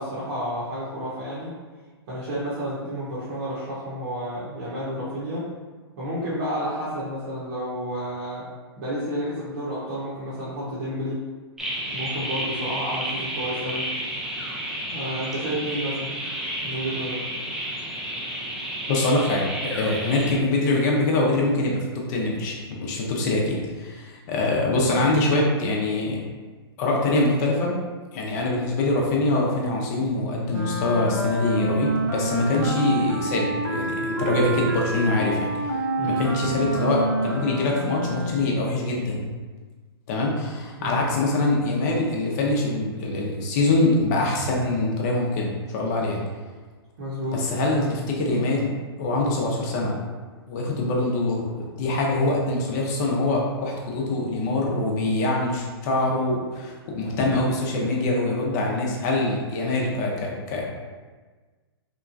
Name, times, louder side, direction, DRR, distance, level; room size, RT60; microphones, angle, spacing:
voice 1, 0.0-1.5 2.1-5.5 6.0-8.4 8.8-11.2 11.9-13.9 14.9-16.1 16.6-17.2 36.0-36.3 40.8-41.0 47.0-47.4, equal, 50° right, -9 dB, 0.9 m, -30 dB
sound 1, 11.6-20.3, right 1 dB, ahead, 0.3 m, -31 dB
voice 2, 18.9-26.2 26.8-27.7 28.1-35.6 36.0-39.3 40.1-46.2 47.3-48.7 49.0-49.9 50.5-60.6, left 2 dB, 40° left, -1 dB, 0.6 m, -24 dB
Wind instrument woodwind instrument, 30.5-38.7, right 2 dB, 75° right, 0.5 m, -28 dB
2.9 x 2.2 x 2.5 m, 1.4 s
hypercardioid pair, 120°, 14 cm